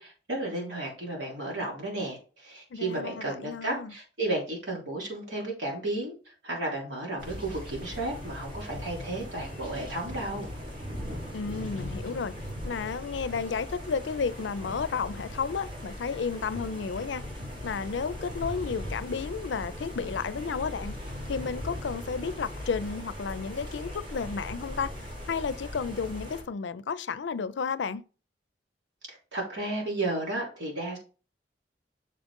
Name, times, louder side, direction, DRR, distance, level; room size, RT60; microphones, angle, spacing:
voice 1, 0.0-10.5 29.1-31.0, right 2 dB, 90° right, 3.3 m, -33 dB
voice 2, 2.7-3.9 11.3-12.3 12.6-17.2 17.6-21.0 21.3-24.9 25.3-28.0, left 5 dB, 80° left, 0.5 m, -32 dB
sound 1, 7.2-26.4, left 1 dB, 55° right, 3.4 m, -39 dB
6.7 x 5.2 x 3.7 m
head